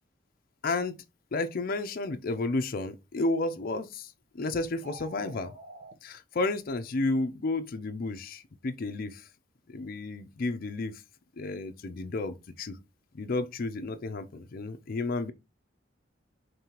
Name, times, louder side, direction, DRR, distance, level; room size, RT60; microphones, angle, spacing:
voice 1, 0.6-0.9 1.3-4.1 4.3-5.5 6.0-9.2 9.7-11.0 11.4-12.8 13.1-15.3, left 2 dB, 50° left, 0.5 m, -32 dB
sound 1, 4.7-5.9, right 2 dB, 40° right, 0.8 m, -46 dB
5.3 x 3.2 x 2.9 m
head